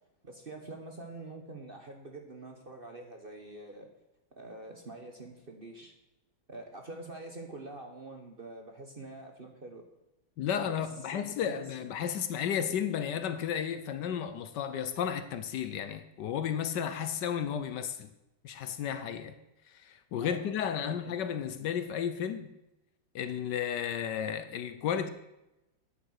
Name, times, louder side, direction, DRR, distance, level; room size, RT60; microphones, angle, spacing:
voice 1, 0.2-3.9 4.3-5.9 6.5-9.9 10.6-10.8 11.1-11.9 20.2-21.2, right 2 dB, 35° right, 1.0 m, -46 dB
voice 2, 10.4-18.1 18.4-19.4 19.7-22.5 23.1-25.1, left 8 dB, 70° left, 1.2 m, -33 dB
9.7 x 8.3 x 6.4 m
omnidirectional pair, 2.1 m